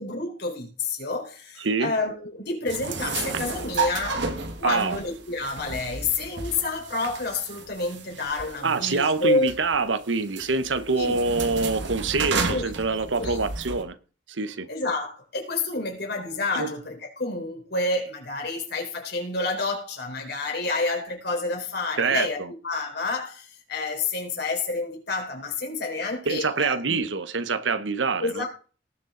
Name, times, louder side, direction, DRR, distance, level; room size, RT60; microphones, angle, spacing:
voice 1, 0.0-4.3 4.6-9.5 10.9-11.2 12.5-12.6 13.2-13.4 14.7-22.4 22.6-27.0 28.2-28.5, left 3 dB, 60° left, 4.4 m, -29 dB
voice 2, 1.6-1.9 4.6-5.0 8.6-13.9 14.4-14.7 16.5-16.7 22.0-22.5 26.3-28.5, right 4 dB, 85° right, 1.0 m, -25 dB
sound 1, 2.7-13.8, right 4 dB, 70° right, 1.6 m, -33 dB
19.0 x 6.8 x 3.9 m
head